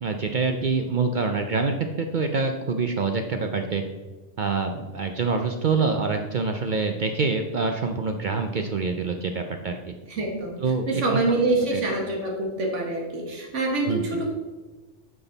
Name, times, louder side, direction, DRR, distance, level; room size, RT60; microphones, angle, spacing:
voice 1, 0.0-3.8 4.4-9.8 10.6-11.0 11.7-11.8 13.9-14.0, right 4 dB, 50° right, 5 dB, 0.6 m, -26 dB
voice 2, 10.1-10.6 10.9-14.3, right 2 dB, 90° right, 0 dB, 1.8 m, -25 dB
9.4 x 6.1 x 4.0 m, 1.2 s
omnidirectional pair, 1.2 m